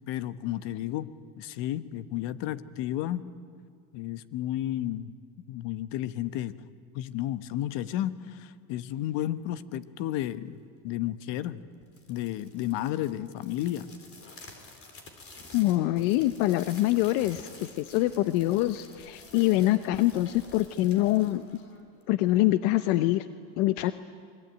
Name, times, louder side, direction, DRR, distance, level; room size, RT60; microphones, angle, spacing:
voice 1, 0.1-1.1 1.4-3.2 3.9-5.1 5.5-6.5 6.9-10.6 10.8-11.6 12.1-13.9, left 13 dB, 70° left, 13 dB, 1.3 m, -32 dB
sound 1, 11.8-22.2, left 3 dB, 30° left, 3.9 m, -50 dB
voice 2, 15.5-21.5 22.1-23.3 23.6-23.9, left 16 dB, 85° left, 12 dB, 0.9 m, -25 dB
26.5 x 22.0 x 9.2 m, 2.2 s
cardioid pair, 120°, 44 cm